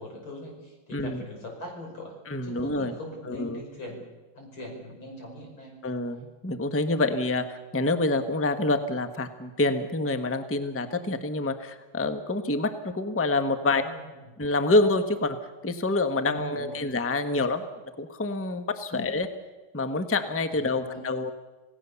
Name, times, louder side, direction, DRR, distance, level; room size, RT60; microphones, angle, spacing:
voice 1, 0.0-2.2 2.4-4.1 4.4-5.7 13.7-14.1 16.3-16.8 18.9-19.0 20.5-21.0, equal, 90° left, 1 dB, 6.5 m, -41 dB
voice 2, 0.9-1.2 2.3-2.9 3.3-3.6 5.8-13.8 14.4-15.4 15.6-17.6 18.0-19.3 19.7-21.3, left 2 dB, 10° left, 8 dB, 0.9 m, -27 dB
27.5 x 17.5 x 7.0 m, 1.2 s
omnidirectional pair, 2.2 m